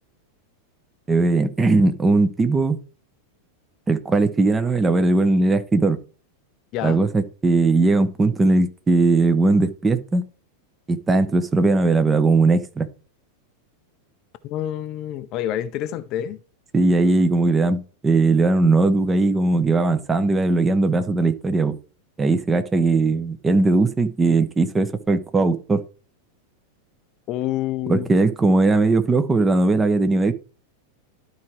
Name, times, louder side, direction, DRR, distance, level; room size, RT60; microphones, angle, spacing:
voice 1, 1.1-2.8 3.9-6.0 6.8-10.3 10.9-12.9 16.7-21.8 22.2-25.8 27.9-30.3, right 3 dB, 15° right, 0.8 m, -19 dB
voice 2, 6.7-7.0 14.4-16.4 27.3-28.1, left 12 dB, 40° left, 0.4 m, -27 dB
12.0 x 4.7 x 3.1 m
figure-of-eight pair, 90°, 0 cm